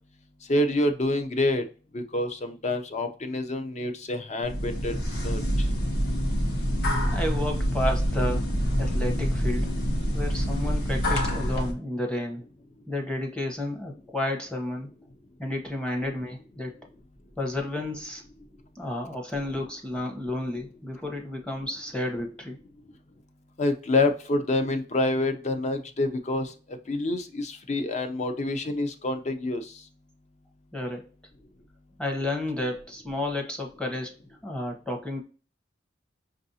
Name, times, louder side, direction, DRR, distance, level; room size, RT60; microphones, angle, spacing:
voice 1, 0.5-1.6 1.9-4.9 5.2-5.4 23.6-26.5 26.9-29.7, left 2 dB, 40° left, 7 dB, 0.5 m, -27 dB
sound 1, 4.4-11.7, equal, 60° left, 1.0 m, -26 dB
voice 2, 7.0-8.5 8.8-9.7 10.1-12.4 12.9-14.9 15.4-16.7 17.4-18.2 18.8-22.6 30.7-31.0 32.0-34.2 34.4-35.2, left 1 dB, 5° left, 2 dB, 0.8 m, -31 dB
5.4 x 2.5 x 2.7 m, 0.37 s
head